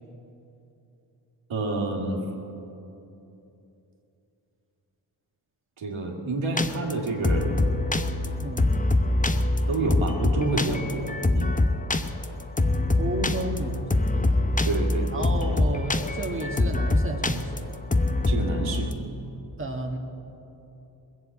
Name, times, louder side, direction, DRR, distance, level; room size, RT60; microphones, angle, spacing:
voice 1, 1.5-2.2 5.8-7.6 9.7-11.0 11.3-11.5 14.6-15.2 18.3-18.9, right 2 dB, 90° right, 0 dB, 2.1 m, -28 dB
sound 1, 6.6-18.9, left 2 dB, 15° left, 0.8 m, -24 dB
voice 2, 8.4-8.8 13.0-14.4 15.1-17.6 19.6-20.0, right 2 dB, 25° right, 2 dB, 1.6 m, -32 dB
20.0 x 7.6 x 8.4 m, 2.9 s
cardioid pair, 55°, 46 cm